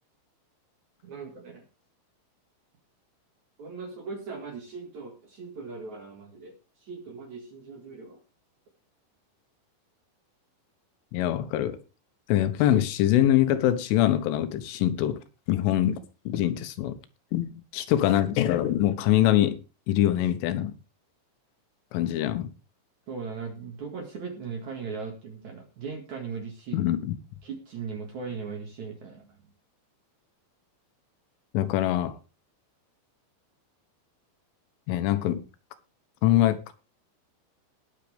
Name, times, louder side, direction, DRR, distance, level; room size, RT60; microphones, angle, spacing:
voice 1, 1.0-1.6 3.6-6.5 6.8-8.2 23.1-26.8 27.4-29.3, right 5 dB, 50° right, 2.5 m, -38 dB
voice 2, 11.1-11.8 12.3-15.2 15.5-16.0 16.3-17.0 17.3-19.6 19.9-20.7 21.9-22.5 26.7-27.2 31.5-32.2 34.9-35.4 36.2-36.7, left 12 dB, 85° left, 3.6 m, -24 dB
20.0 x 7.6 x 3.4 m
omnidirectional pair, 5.6 m